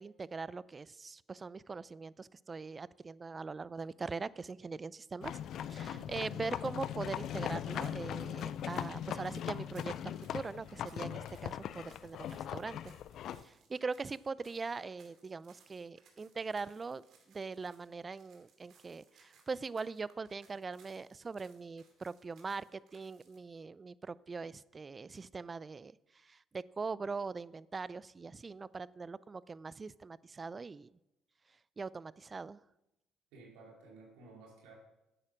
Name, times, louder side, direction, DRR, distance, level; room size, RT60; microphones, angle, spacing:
voice 1, 0.0-5.4 5.7-12.9 13.4-30.9 31.8-32.6, right 4 dB, 30° right, 20 dB, 0.4 m, -42 dB
sound 1, 5.2-13.4, left 10 dB, 65° left, 0.4 m, -40 dB
sound 2, 7.0-23.4, right 5 dB, 65° right, 2.5 m, -67 dB
voice 2, 33.3-34.7, right 2 dB, 85° right, -1 dB, 2.9 m, -54 dB
10.0 x 8.3 x 6.0 m, 0.90 s
supercardioid pair, 65°, 0 cm